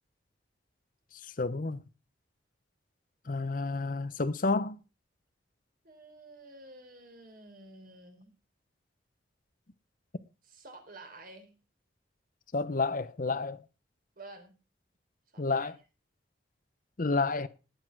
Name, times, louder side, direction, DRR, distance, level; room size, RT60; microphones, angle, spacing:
voice 1, 1.4-1.8 3.3-4.8 12.5-13.6 15.4-15.7 17.0-17.5, left 3 dB, 45° left, 0.7 m, -30 dB
voice 2, 5.8-8.3 10.4-11.5 14.2-14.5 15.3-15.7, right 2 dB, 50° right, 4.1 m, -50 dB
18.5 x 8.5 x 4.7 m
head